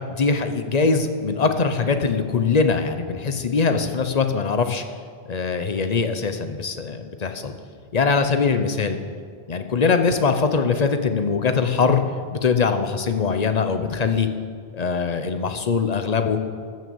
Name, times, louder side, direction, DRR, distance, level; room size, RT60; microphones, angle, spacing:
voice 1, 0.1-4.8 5.3-7.5 7.9-9.0 9.5-12.0 12.3-14.3 14.7-16.5, left 5 dB, 40° left, 8 dB, 0.8 m, -22 dB
14.0 x 6.2 x 7.1 m, 2.1 s
omnidirectional pair, 1.1 m